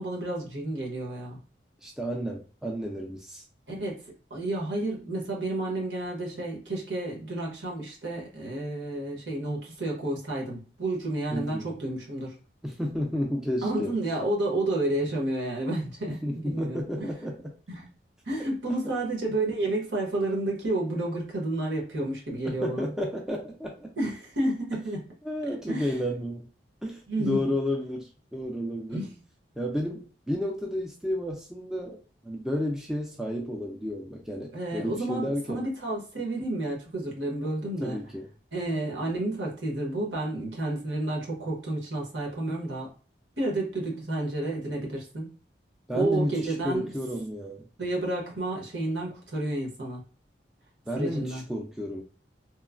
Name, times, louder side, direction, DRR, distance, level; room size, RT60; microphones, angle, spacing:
voice 1, 0.0-1.4 3.7-12.4 13.6-17.1 17.7-17.9 18.3-22.9 24.0-25.1 25.7-26.0 27.1-27.4 28.9-29.2 34.5-38.0 38.5-42.9 43.4-45.3 45.9-46.9 47.8-50.0 51.0-51.5, right 2 dB, 80° right, -1 dB, 1.1 m, -31 dB
voice 2, 1.8-3.4 11.3-11.6 12.6-13.9 16.1-17.5 18.7-18.8 22.4-23.9 25.2-26.5 26.8-29.1 29.6-35.7 37.8-38.3 45.9-47.7 50.9-52.0, equal, 5° right, 0 dB, 0.3 m, -32 dB
3.0 x 2.1 x 2.4 m, 0.37 s
head